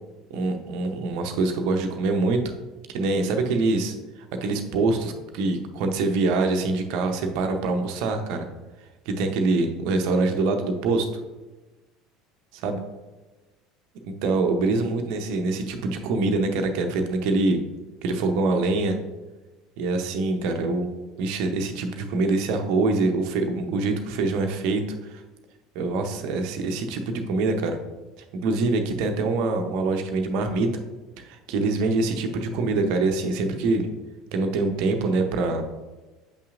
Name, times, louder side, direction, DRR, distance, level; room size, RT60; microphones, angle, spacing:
voice 1, 0.3-2.4 2.9-4.0 4.3-8.5 9.1-11.1 12.5-12.8 14.0-17.6 18.0-19.0 19.8-20.9 21.2-25.2 25.7-27.8 28.2-30.7 31.2-33.9 34.3-35.6, right 3 dB, 60° right, 5 dB, 0.7 m, -24 dB
8.2 x 5.6 x 2.5 m, 1.2 s
hypercardioid pair, 70°, 0 cm